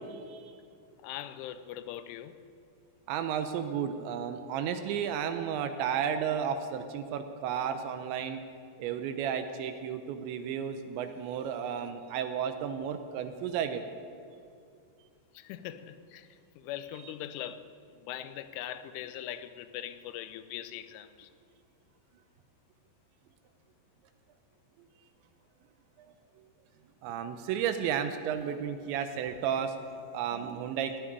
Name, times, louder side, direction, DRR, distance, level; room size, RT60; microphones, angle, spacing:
voice 1, 0.1-0.5 3.1-8.4 8.8-13.8 26.0-26.1 26.4-26.5 27.0-31.0, right 8 dB, 80° right, 2.8 m, -33 dB
voice 2, 1.0-2.4 15.3-21.3, left 11 dB, 85° left, 3.0 m, -41 dB
18.0 x 7.6 x 9.9 m
omnidirectional pair, 5.6 m